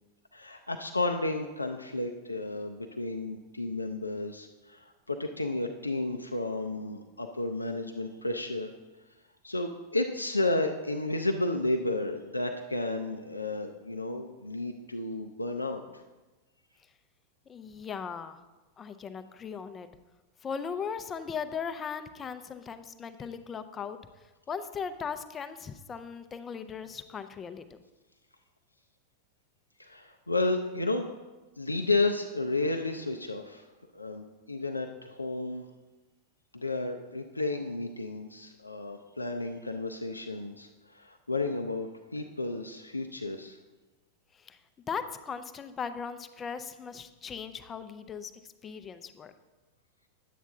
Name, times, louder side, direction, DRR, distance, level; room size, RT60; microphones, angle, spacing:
voice 1, 0.3-8.7 9.4-15.8 29.8-31.0 31.6-33.6 33.9-35.7 36.5-43.6, left 2 dB, 85° left, 4 dB, 0.5 m, -32 dB
voice 2, 17.5-18.4 18.8-19.9 20.4-27.8 44.3-44.6 44.9-49.3, left 6 dB, 20° left, 10 dB, 0.6 m, -38 dB
10.0 x 8.3 x 3.7 m, 1.1 s
figure-of-eight pair, 90°, 0 cm